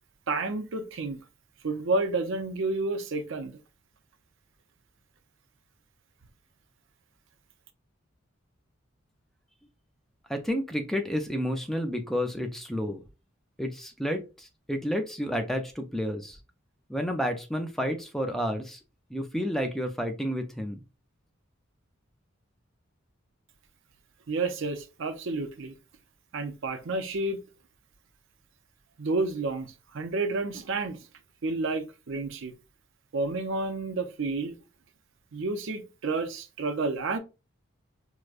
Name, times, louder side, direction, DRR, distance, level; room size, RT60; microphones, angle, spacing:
voice 1, 0.3-1.2 1.6-3.6 24.3-25.7 26.3-27.4 29.0-31.0 31.4-32.5 33.1-34.5 35.3-37.2, right 3 dB, 65° right, 0.5 m, -30 dB
voice 2, 10.3-13.0 13.6-16.4 16.9-18.8 19.1-20.8, equal, ahead, 0.4 m, -30 dB
4.7 x 2.1 x 2.4 m
head